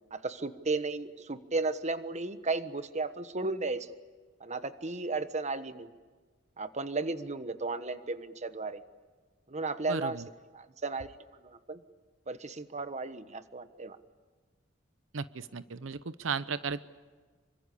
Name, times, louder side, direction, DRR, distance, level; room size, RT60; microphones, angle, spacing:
voice 1, 0.1-3.9 4.4-5.9 6.6-8.8 9.5-10.2 10.5-11.1 11.4-11.8 12.3-14.0, right 3 dB, 35° right, 11 dB, 1.2 m, -34 dB
voice 2, 9.9-10.2 15.1-16.8, right 5 dB, 85° right, 14 dB, 0.8 m, -35 dB
27.0 x 24.5 x 8.5 m, 1.4 s
head